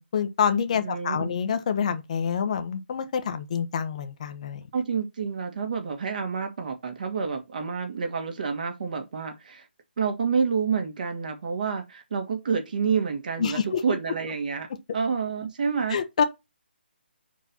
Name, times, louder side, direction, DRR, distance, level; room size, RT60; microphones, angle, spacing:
voice 1, 0.0-4.6 13.4-13.8 15.9-16.2, left 7 dB, 40° left, 1.0 m, -27 dB
voice 2, 0.8-1.4 4.7-9.6 10.0-14.7 14.9-16.0, right 6 dB, 45° right, 1.9 m, -28 dB
5.7 x 4.7 x 4.1 m
figure-of-eight pair, 145°, 6 cm